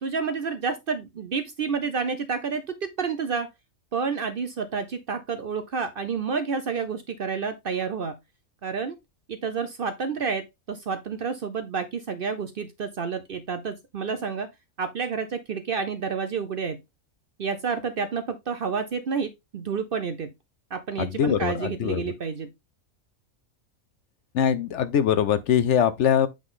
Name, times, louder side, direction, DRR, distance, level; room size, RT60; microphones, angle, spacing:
voice 1, 0.0-3.5 3.9-8.2 8.6-9.0 9.3-14.5 14.8-16.8 17.4-20.3 20.7-22.5, right 5 dB, 55° right, 0.7 m, -29 dB
voice 2, 21.0-22.0 24.3-26.3, left 9 dB, 65° left, 0.8 m, -22 dB
8.3 x 3.8 x 3.7 m
omnidirectional pair, 1.4 m